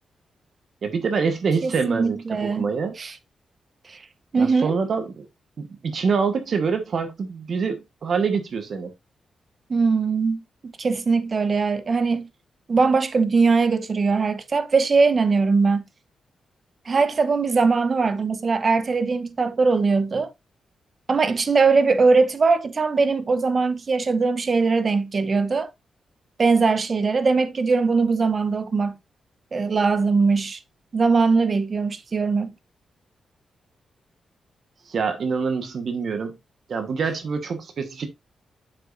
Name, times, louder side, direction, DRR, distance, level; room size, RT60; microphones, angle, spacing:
voice 1, 0.8-2.9 4.4-5.2 5.6-8.9 34.9-36.4 36.7-38.1, right 5 dB, 55° right, 1.2 m, -25 dB
voice 2, 1.6-2.7 3.0-3.1 3.9-4.0 4.3-4.8 9.7-12.3 12.7-15.8 16.9-20.3 21.1-25.7 26.4-29.0 29.5-30.6 30.9-32.5, right 4 dB, 40° right, 0.9 m, -21 dB
7.7 x 6.5 x 2.6 m
cardioid pair, 115°, 0 cm